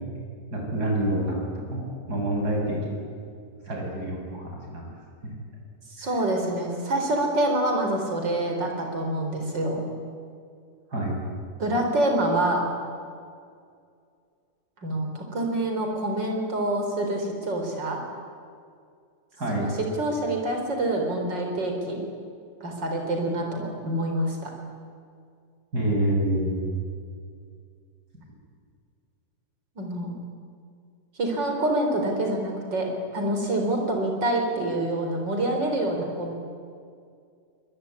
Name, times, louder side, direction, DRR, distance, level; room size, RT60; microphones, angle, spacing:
voice 1, 0.5-3.0 3.6-4.8 5.2-5.3 6.0-6.1 10.9-11.1 19.4-19.6 25.7-26.5, right 1 dB, 60° right, -1 dB, 8.0 m, -27 dB
voice 2, 6.0-9.8 11.6-12.7 14.8-18.0 19.6-19.7 20.0-22.1 22.6-24.5 29.8-30.1 31.2-36.3, right 1 dB, 85° right, 2 dB, 4.9 m, -26 dB
24.5 x 21.5 x 9.9 m, 2.2 s
omnidirectional pair, 1.9 m